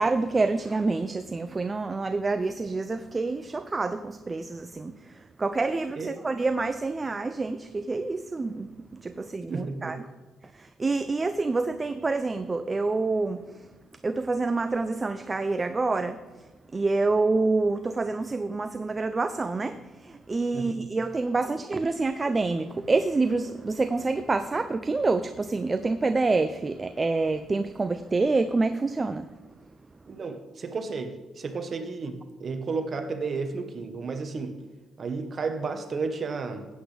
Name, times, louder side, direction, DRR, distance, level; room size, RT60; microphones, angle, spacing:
voice 1, 0.0-10.0 10.5-13.7 14.0-16.2 16.7-29.3, right 3 dB, 25° right, 0.5 m, -27 dB
voice 2, 9.5-10.0 20.5-20.7 30.1-34.5 35.0-36.7, right 4 dB, 45° right, 1.3 m, -32 dB
15.5 x 8.4 x 3.4 m
cardioid pair, 90°, 0 cm